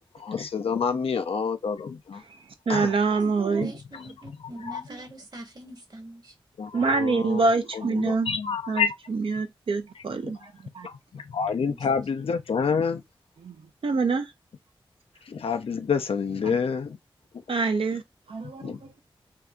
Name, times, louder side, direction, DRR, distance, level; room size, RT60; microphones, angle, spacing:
voice 1, 0.2-2.2 2.7-2.9 4.7-4.8 6.6-7.5 7.7-8.9 10.8-13.0 15.3-17.0 18.6-18.8, left 6 dB, 80° left, 0.5 m, -28 dB
voice 2, 2.7-3.7 6.7-8.3 8.7-10.4 10.7-10.9 13.4-13.6 13.8-14.3 16.4-16.5 17.5-18.0 18.3-18.8, right 4 dB, 70° right, 0.6 m, -25 dB
voice 3, 3.5-6.3 11.7-11.8, right 1 dB, 45° right, 1.3 m, -43 dB
2.7 x 2.3 x 3.6 m
cardioid pair, 45°, 10 cm